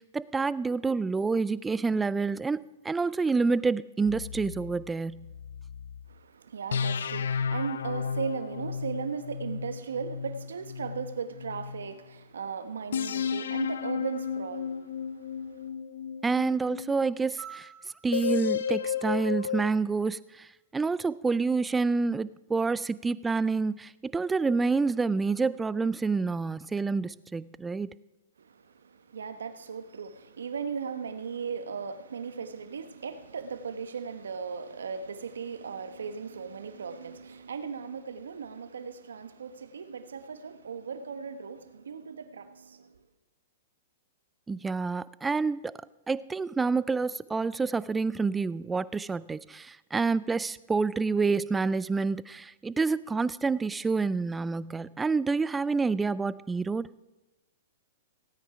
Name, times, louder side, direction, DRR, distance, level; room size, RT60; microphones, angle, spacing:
voice 1, 0.0-5.3 16.2-17.7 18.0-27.9 44.5-56.9, right 4 dB, 10° right, 0.3 m, -28 dB
sound 1, 4.1-6.1 6.7-11.9 12.9-17.2 18.1-19.7, left 7 dB, 80° left, 0.5 m, -33 dB
voice 2, 6.1-15.7 28.4-42.9, right 6 dB, 85° right, 1.1 m, -37 dB
sound 2, 17.4-19.9 21.5-21.6, right 9 dB, 25° right, 3.7 m, -50 dB
16.5 x 9.2 x 5.0 m
hypercardioid pair, 130°, 0 cm